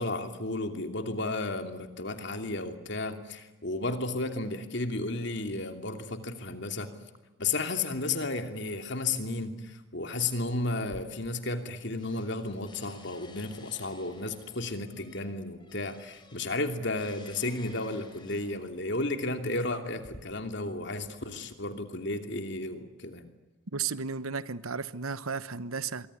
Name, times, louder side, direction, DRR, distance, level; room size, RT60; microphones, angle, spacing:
voice 1, 0.0-6.9 7.4-23.3, left 2 dB, 55° left, 2.8 m, -33 dB
sound 1, 10.8-11.7 12.0-18.8 19.6-20.2, left 2 dB, 20° left, 4.6 m, -53 dB
voice 2, 23.7-26.1, right 5 dB, 90° right, 1.1 m, -34 dB
25.5 x 23.0 x 9.8 m
head